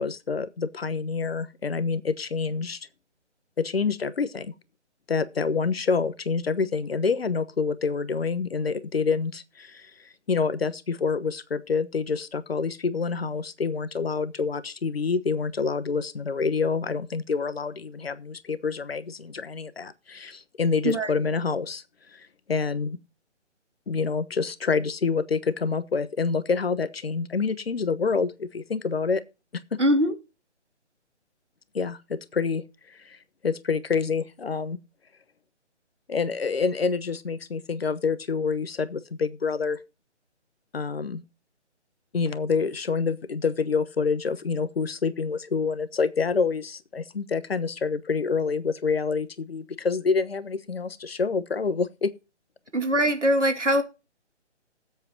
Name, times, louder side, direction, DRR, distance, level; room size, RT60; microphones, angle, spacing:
voice 1, 0.0-2.8 3.6-4.6 5.1-9.9 10.3-21.8 22.1-23.0 23.9-29.2 29.5-29.6 31.7-33.2 33.4-34.8 36.1-39.8 40.7-41.2 42.1-52.1, left 5 dB, 55° left, 1.1 m, -27 dB
voice 2, 29.8-30.1 52.7-53.8, equal, 80° right, 2.2 m, -22 dB
19.5 x 8.0 x 2.8 m
figure-of-eight pair, 145°, 35 cm